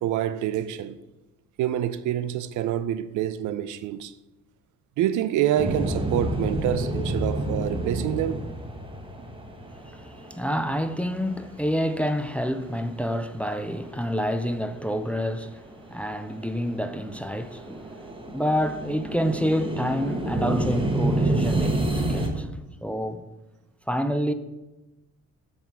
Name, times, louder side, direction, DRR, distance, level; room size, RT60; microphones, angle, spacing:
voice 1, 0.0-1.0 1.6-4.1 5.0-8.5, right 11 dB, 80° right, 0.5 m, -27 dB
sound 1, 5.6-13.2 13.5-14.5 14.9-22.3, right 1 dB, 15° right, 1.1 m, -29 dB
voice 2, 9.8-22.5 22.8-23.3 23.9-24.3, equal, 5° left, 0.4 m, -28 dB
7.3 x 3.5 x 6.0 m
cardioid pair, 90°, 30 cm